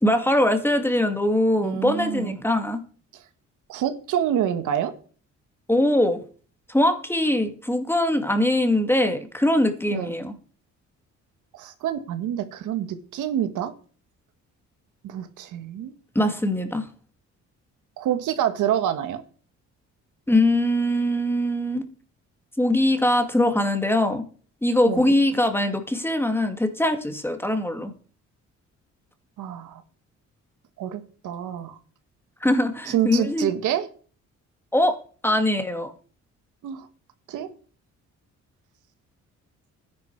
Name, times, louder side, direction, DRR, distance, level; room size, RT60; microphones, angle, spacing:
voice 1, 0.0-2.8 5.7-6.2 6.7-10.3 16.2-16.9 20.3-21.8 22.6-24.2 24.6-27.9 32.4-33.5 34.7-35.0 35.2-35.9, left 1 dB, 5° left, 7 dB, 2.2 m, -22 dB
voice 2, 1.6-2.4 3.1-3.2 3.7-4.9 9.9-10.1 11.6-13.7 15.0-15.9 18.0-19.2 24.8-25.0 29.4-29.8 30.8-31.8 32.9-33.9 36.6-36.9 37.3-37.5, right 10 dB, 85° right, 10 dB, 1.5 m, -27 dB
12.0 x 10.5 x 4.7 m, 0.41 s
cardioid pair, 90°, 30 cm